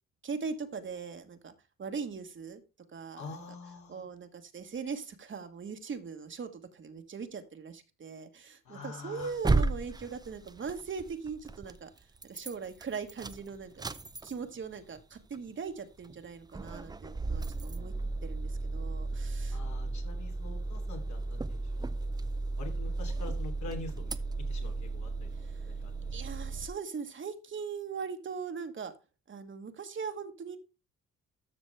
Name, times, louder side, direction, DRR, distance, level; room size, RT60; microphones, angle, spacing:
voice 1, 0.2-1.5 1.8-2.6 2.9-3.4 3.9-11.9 12.2-13.9 14.2-17.9 18.2-19.6 25.3-25.7 26.1-28.9 29.3-30.6, right 5 dB, 40° right, 7 dB, 1.3 m, -40 dB
voice 2, 3.2-4.1 8.6-9.3 19.5-22.1 22.6-24.1 24.5-25.3 25.6-26.1, left 3 dB, 65° left, 2 dB, 3.1 m, -45 dB
sound 1, 9.2-11.8 12.2-12.5 12.8-14.7 15.0-15.1 15.3-15.4 16.0-16.3 16.5-26.7, right 3 dB, 15° right, 0.5 m, -34 dB
13.0 x 6.1 x 3.4 m, 0.30 s
cardioid pair, 90°, 30 cm